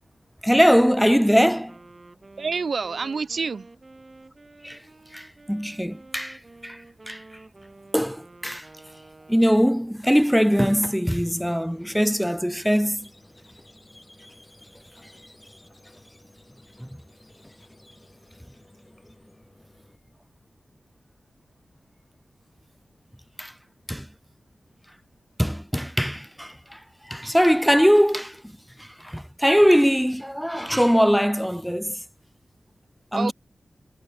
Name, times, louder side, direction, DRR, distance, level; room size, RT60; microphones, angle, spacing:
voice 1, 0.4-1.8 4.6-4.8 5.1-7.2 7.9-8.7 9.3-13.1 16.8-16.9 23.4-23.5 23.9-24.1 25.4-26.8 27.0-28.4 28.8-32.0 33.1-33.3, equal, ahead, 0.9 m, -21 dB
Wind instrument woodwind instrument, 1.0-10.0, right 2 dB, 35° right, 7.1 m, -50 dB
voice 2, 2.4-3.7 33.1-33.3, right 5 dB, 70° right, 0.8 m, -27 dB
Squeak, 11.2-20.0, left 1 dB, 15° left, 6.8 m, -53 dB
wide cardioid pair, 85°, 0 cm